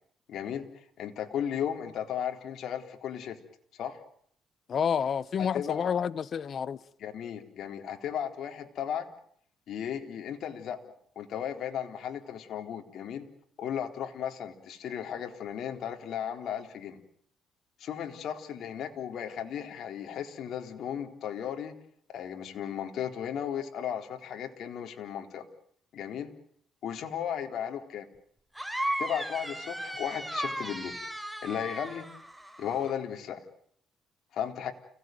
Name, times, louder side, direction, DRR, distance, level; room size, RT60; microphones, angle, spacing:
voice 1, 0.3-3.4 3.8-4.0 5.5-5.9 7.0-9.1 9.7-13.3 13.6-17.0 17.8-21.7 22.1-25.4 25.9-26.3 26.8-28.1 29.0-31.0 31.4-32.0 32.6-33.4 34.3-34.7, left 9 dB, 70° left, 3.9 m, -35 dB
voice 2, 4.7-6.8, left 7 dB, 55° left, 1.1 m, -29 dB
sound 1, 28.6-32.9, right 1 dB, 5° right, 4.3 m, -36 dB
30.0 x 18.0 x 9.3 m
cardioid pair, 90°, 0 cm